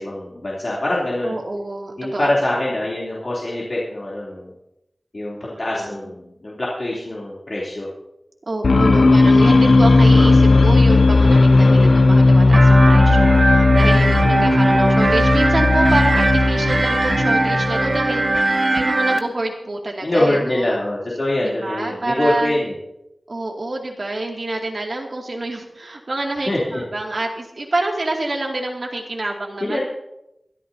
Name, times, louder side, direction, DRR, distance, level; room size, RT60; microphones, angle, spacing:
voice 1, 0.0-1.3 2.0-4.5 5.1-7.9 8.9-9.1 13.7-14.0 20.0-22.7 26.5-26.8 29.6-29.8, left 1 dB, 55° left, -6 dB, 3.1 m, -24 dB
voice 2, 1.2-2.7 5.5-6.1 8.5-20.8 21.4-22.6 23.3-29.8, right 2 dB, 60° right, 0 dB, 2.4 m, -27 dB
sound 1, 8.6-18.2, left 3 dB, 85° left, 0.5 m, -14 dB
sound 2, 12.5-19.2, right 2 dB, 45° right, 1.0 m, -19 dB
23.0 x 12.5 x 2.8 m, 0.87 s
wide cardioid pair, 70°, 0 cm